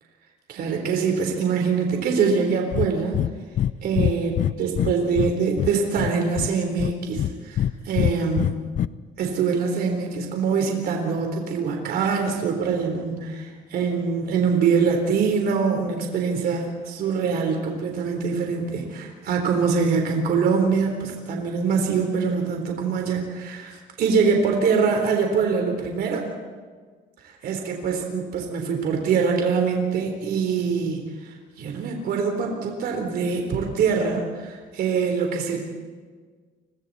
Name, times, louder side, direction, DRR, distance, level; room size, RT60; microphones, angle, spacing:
voice 1, 0.5-3.2 3.8-8.6 9.2-23.7 24.0-26.2 27.2-35.6, right 5 dB, 65° right, 3 dB, 3.8 m, -24 dB
Breathing, 2.7-2.9 3.1-3.7 4.0-5.3 5.6-6.5 6.8-7.7 8.0-8.9, left 11 dB, 50° left, 0.6 m, -23 dB
30.0 x 24.0 x 4.2 m, 1.5 s
cardioid pair, 110°, 17 cm